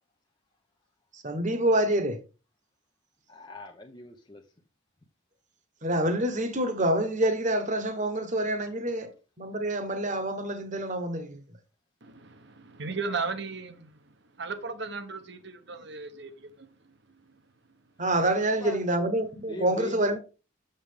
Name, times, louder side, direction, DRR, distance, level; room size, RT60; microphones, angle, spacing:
voice 1, 1.2-2.2 5.8-9.1 9.4-11.4 18.0-20.2, right 1 dB, 35° right, 1.1 m, -27 dB
voice 2, 3.3-4.4 18.4-18.9 19.5-20.2, left 2 dB, 20° left, 0.7 m, -40 dB
voice 3, 12.0-17.2, right 4 dB, 55° right, 0.9 m, -37 dB
7.0 x 6.7 x 3.5 m
head